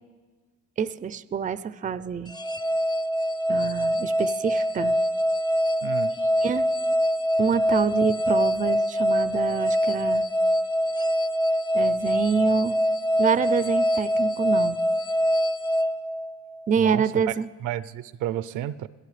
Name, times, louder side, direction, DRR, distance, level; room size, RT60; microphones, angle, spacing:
voice 1, 0.8-2.3 3.5-4.9 6.2-6.7 7.4-10.2 11.7-12.8 13.2-14.8 16.7-17.5, right 6 dB, 25° right, 14 dB, 0.4 m, -27 dB
sound 1, 2.3-16.7, equal, 15° left, 0.7 m, -24 dB
voice 2, 5.8-6.1 16.8-17.3 17.6-18.9, right 12 dB, 80° right, 15 dB, 0.5 m, -31 dB
26.5 x 17.0 x 3.3 m, 1.4 s
cardioid pair, 90°, 30 cm